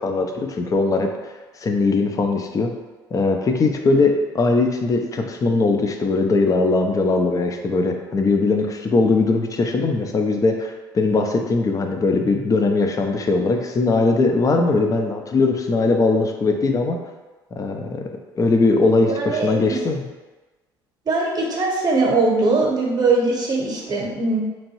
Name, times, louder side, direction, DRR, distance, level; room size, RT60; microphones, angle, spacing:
voice 1, 0.0-1.3 1.6-2.7 3.1-17.0 17.5-18.1 18.4-20.0, left 3 dB, 30° left, 4 dB, 0.5 m, -20 dB
voice 2, 19.1-19.8 21.1-24.4, right 3 dB, 35° right, -2 dB, 0.9 m, -21 dB
3.0 x 2.5 x 2.9 m, 1.2 s
hypercardioid pair, 60°, 12 cm